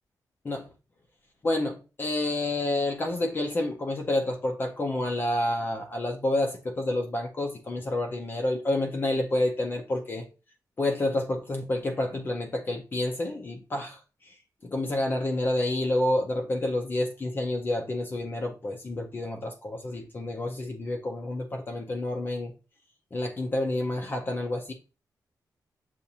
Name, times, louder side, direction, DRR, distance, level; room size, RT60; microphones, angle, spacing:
voice 1, 1.4-10.2 10.8-14.0 14.6-22.5 23.1-24.7, left 1 dB, 30° left, 0.5 m, -29 dB
7.0 x 2.5 x 2.7 m
wide cardioid pair, 175°, 7 cm